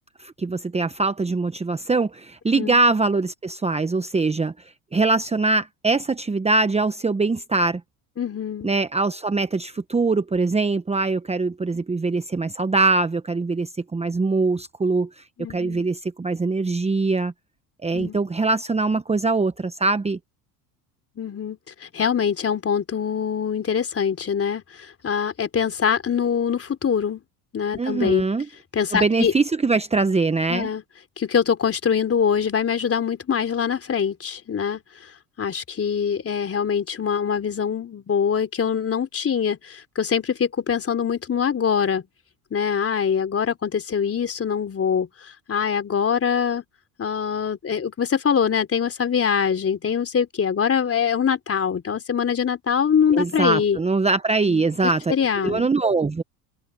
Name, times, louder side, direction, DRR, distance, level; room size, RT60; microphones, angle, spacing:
voice 1, 0.2-4.5 4.9-7.8 8.6-15.2 15.5-17.3 17.8-20.2 27.8-28.5 28.9-30.7 53.1-55.1 55.4-56.2, right 3 dB, 15° right, 1.1 m, -22 dB
voice 2, 8.2-8.7 15.4-15.9 17.9-18.2 21.2-27.2 27.5-28.3 28.7-29.3 30.5-30.8 31.2-34.8 35.4-42.1 42.5-46.6 47.0-53.8 54.5-55.7, left 7 dB, 35° left, 3.8 m, -24 dB
supercardioid pair, 90°, 42 cm